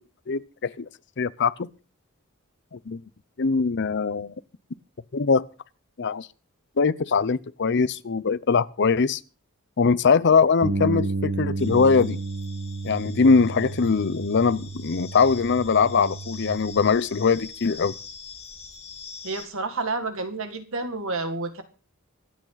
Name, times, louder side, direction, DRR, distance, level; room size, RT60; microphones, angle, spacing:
voice 1, 0.3-0.8 1.2-1.7 2.7-3.0 3.4-4.3 5.1-5.4 6.0-6.3 6.8-9.2 9.8-12.2 12.8-17.9, left 5 dB, 55° left, 0.6 m, -22 dB
Bass guitar, 10.6-16.9, right 3 dB, 90° right, 1.3 m, -32 dB
cicadas crickets night, 11.6-19.5, left 5 dB, 30° left, 2.4 m, -44 dB
voice 2, 19.2-21.6, right 3 dB, 65° right, 2.1 m, -30 dB
25.5 x 8.7 x 4.0 m
head